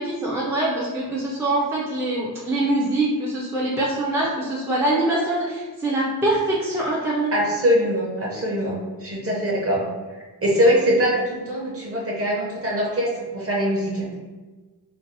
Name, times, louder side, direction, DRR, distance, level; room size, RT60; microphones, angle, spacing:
voice 1, 0.0-7.3, right 2 dB, 5° right, -6 dB, 0.4 m, -24 dB
voice 2, 7.3-9.8 10.4-14.1, equal, 35° right, -4 dB, 0.8 m, -22 dB
2.6 x 2.0 x 3.9 m, 1.3 s
wide cardioid pair, 150°, 40 cm